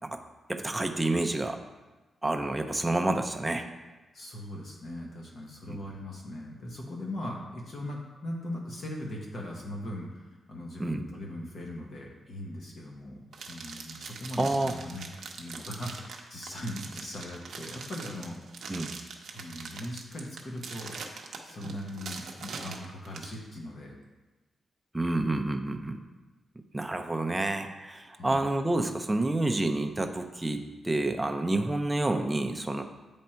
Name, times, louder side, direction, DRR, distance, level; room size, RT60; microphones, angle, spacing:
voice 1, 0.5-1.6 2.2-3.7 5.7-5.8 10.8-11.0 14.4-14.7 18.7-18.9 24.9-26.0 26.7-32.8, right 2 dB, 10° right, 5 dB, 0.4 m, -29 dB
voice 2, 4.1-15.1 15.3-18.4 19.3-21.0 21.4-23.9 25.1-25.3 28.1-28.5, left 1 dB, 45° left, -1 dB, 1.0 m, -40 dB
sound 1, 13.3-23.4, right 5 dB, 60° right, 0.7 m, -42 dB
8.6 x 3.5 x 4.3 m, 1.2 s
wide cardioid pair, 170°, 0 cm